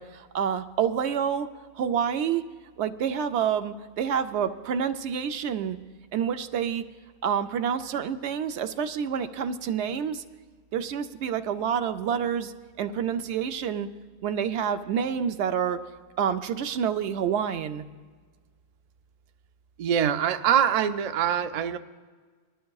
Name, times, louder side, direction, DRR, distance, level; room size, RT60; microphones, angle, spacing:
voice 1, 0.0-1.5 1.8-2.4 2.8-5.8 6.1-6.8 7.2-10.2 10.7-12.5 12.8-13.9 14.2-15.8 16.2-17.8, right 8 dB, 85° right, 8 dB, 0.9 m, -28 dB
voice 2, 19.8-21.8, right 9 dB, 60° right, 10 dB, 0.4 m, -24 dB
20.5 x 12.5 x 2.3 m, 1.5 s
omnidirectional pair, 1.1 m